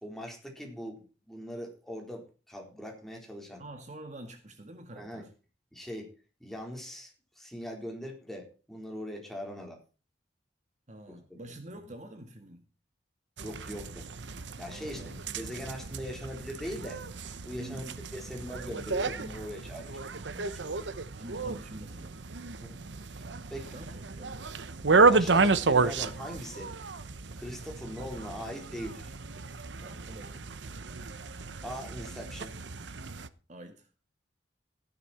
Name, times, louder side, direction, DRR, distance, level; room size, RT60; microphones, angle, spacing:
voice 1, 0.0-3.6 5.0-5.2 5.7-6.1 6.4-9.8 11.3-11.5 13.4-14.1 14.6-17.0 17.4-20.0 20.3-20.8 22.6-22.8 23.1-23.2 23.5-23.8 25.1-26.7 27.4-29.1 31.6-32.6, equal, ahead, 1 dB, 4.1 m, -41 dB
voice 2, 3.6-5.3 10.9-12.6 14.7-15.5 17.6-17.9 21.2-22.3 23.7-24.4 29.8-30.5 33.5-33.9, right 1 dB, 40° right, 6 dB, 1.8 m, -47 dB
sound 1, 13.4-33.3, right 4 dB, 75° right, 0.9 m, -31 dB
15.0 x 11.0 x 4.3 m, 0.33 s
head